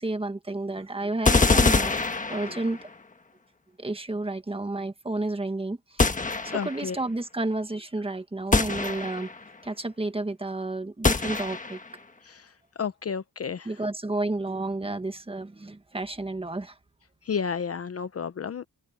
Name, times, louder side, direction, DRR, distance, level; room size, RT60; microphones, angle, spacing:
voice 1, 0.0-1.9 2.3-2.8 3.8-6.1 6.4-9.3 9.6-11.8 13.6-16.7, right 2 dB, 15° right, 1.4 m, -31 dB
sound 1, 1.2-2.9 6.0-6.9 8.5-9.4 11.0-11.9, left 3 dB, 20° left, 1.4 m, -24 dB
voice 2, 6.5-7.0 12.3-12.4 12.8-13.7 17.3-18.6, left 6 dB, 40° left, 0.7 m, -31 dB
wide cardioid pair, 130°, 36 cm